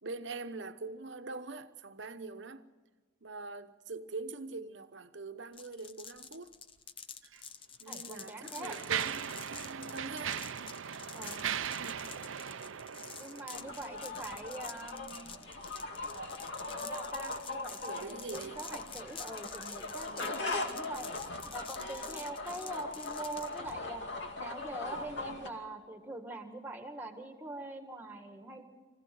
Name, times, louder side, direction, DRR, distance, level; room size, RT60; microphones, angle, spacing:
voice 1, 0.0-2.6 3.2-6.5 7.8-10.4 11.8-12.0 17.9-18.6 20.1-20.3, right 3 dB, 65° right, 1.0 m, -43 dB
sound 1, 5.5-23.7, left 7 dB, 25° left, 0.6 m, -48 dB
Mechanisms, 7.2-7.4 8.1-13.9, right 8 dB, 80° right, 0.6 m, -38 dB
voice 2, 7.9-8.8 11.1-11.4 13.2-15.3 16.7-21.1 21.5-24.0 24.4-28.6, right 2 dB, 10° right, 1.8 m, -43 dB
sound 2, 13.5-25.5, left 2 dB, 60° left, 2.5 m, -40 dB
24.5 x 16.5 x 7.8 m
head